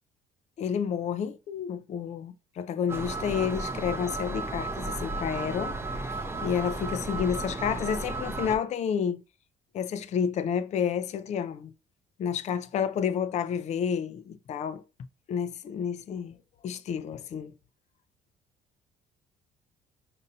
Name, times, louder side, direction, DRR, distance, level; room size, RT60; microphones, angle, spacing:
voice 1, 0.6-6.1 6.4-9.2 9.7-11.7 12.2-14.8 15.3-16.4 16.6-17.5, left 7 dB, 40° left, 0.4 m, -30 dB
sound 1, 2.9-8.6, right 2 dB, 15° right, 0.5 m, -34 dB
5.2 x 2.6 x 2.7 m
cardioid pair, 110°, 17 cm